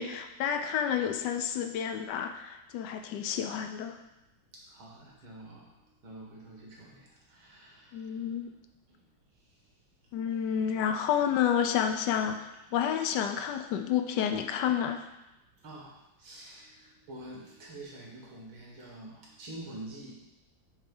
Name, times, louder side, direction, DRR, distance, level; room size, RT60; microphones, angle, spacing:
voice 1, 0.0-4.0 7.9-8.5 10.1-15.0, left 8 dB, 75° left, 7 dB, 1.0 m, -30 dB
voice 2, 4.5-5.8 6.0-8.2 8.9-9.0 15.6-20.1, right 1 dB, 80° right, -3 dB, 2.4 m, -47 dB
6.4 x 3.5 x 5.3 m, 0.94 s
omnidirectional pair, 2.2 m